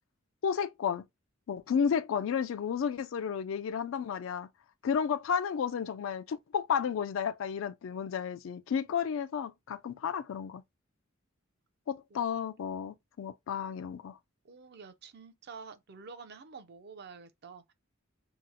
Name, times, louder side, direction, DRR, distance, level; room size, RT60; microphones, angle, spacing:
voice 1, 0.4-1.1 1.5-4.5 4.8-10.6 11.9-14.2, left 7 dB, 70° left, 0.3 m, -32 dB
voice 2, 14.4-17.7, right 5 dB, 55° right, 0.5 m, -49 dB
2.8 x 2.0 x 3.7 m
head